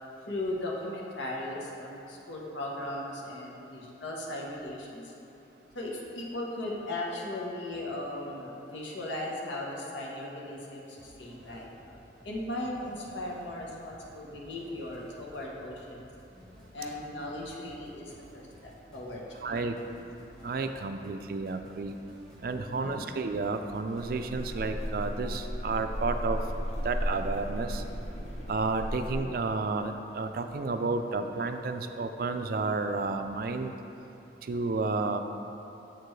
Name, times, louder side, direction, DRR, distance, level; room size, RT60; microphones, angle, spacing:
voice 1, 0.3-5.1 5.7-16.1 16.7-19.6 22.6-23.1, left 1 dB, 85° left, -3 dB, 1.0 m, -37 dB
sound 1, 11.0-25.1, equal, 5° left, 0.8 m, -55 dB
voice 2, 19.4-19.8 20.4-22.0 22.4-26.4 26.8-27.8 28.5-33.7 34.4-35.2, right 3 dB, 50° right, 7 dB, 0.4 m, -31 dB
sound 2, 24.0-29.2, equal, 35° left, 0.7 m, -35 dB
7.6 x 6.7 x 3.2 m, 3.0 s
head